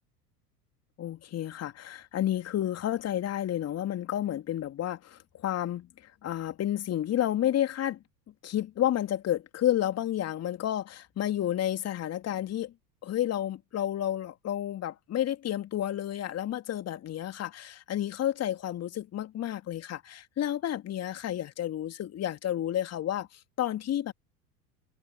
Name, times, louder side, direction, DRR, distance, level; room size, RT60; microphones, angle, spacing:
voice 1, 1.0-8.0 8.4-12.7 13.0-24.1, left 11 dB, 30° left, 2.9 m, -31 dB
figure-of-eight pair, 80°, 49 cm